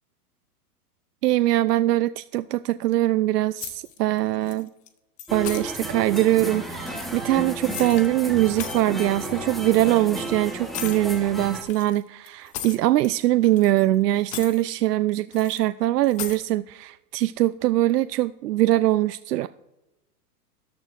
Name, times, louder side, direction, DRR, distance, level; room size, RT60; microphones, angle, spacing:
voice 1, 1.2-4.7 5.3-19.5, right 15 dB, 80° right, 13 dB, 0.5 m, -22 dB
sound 1, 3.6-4.2 4.5-4.9 5.2-5.6 6.7-8.1 8.4-8.9 9.8-10.0 10.7-11.0 11.7-13.1 13.4-14.0 14.2-14.6 15.3-15.6 16.0-16.4, left 10 dB, 15° left, 0.5 m, -37 dB
sound 2, 5.3-11.6, right 1 dB, ahead, 1.0 m, -33 dB
13.0 x 11.0 x 2.5 m, 1.0 s
hypercardioid pair, 140°, 47 cm